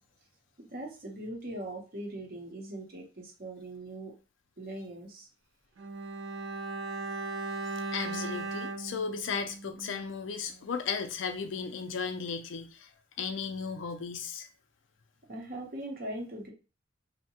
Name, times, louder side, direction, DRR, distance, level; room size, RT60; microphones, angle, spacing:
voice 1, 0.7-4.1 4.6-5.3 15.3-16.5, right 1 dB, 45° right, 0.8 m, -40 dB
Bowed string instrument, 5.8-10.2 10.5-10.6, right 3 dB, 70° right, 0.4 m, -38 dB
voice 2, 7.9-12.9 13.2-14.5, left 5 dB, 70° left, 0.4 m, -35 dB
2.7 x 2.2 x 2.8 m
head